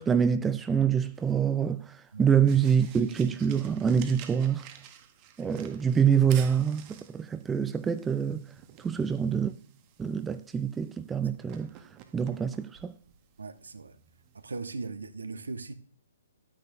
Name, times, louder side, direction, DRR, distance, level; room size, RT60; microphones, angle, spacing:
voice 1, 0.0-4.6 5.4-8.5 8.8-9.5 10.0-11.7 12.1-12.9, right 7 dB, 10° right, 0.5 m, -26 dB
sound 1, 1.1-14.7, right 10 dB, 30° right, 1.0 m, -51 dB
voice 2, 13.4-14.0 14.3-15.7, right 3 dB, 75° right, 1.1 m, -39 dB
12.0 x 9.2 x 2.7 m
figure-of-eight pair, 125°, 0 cm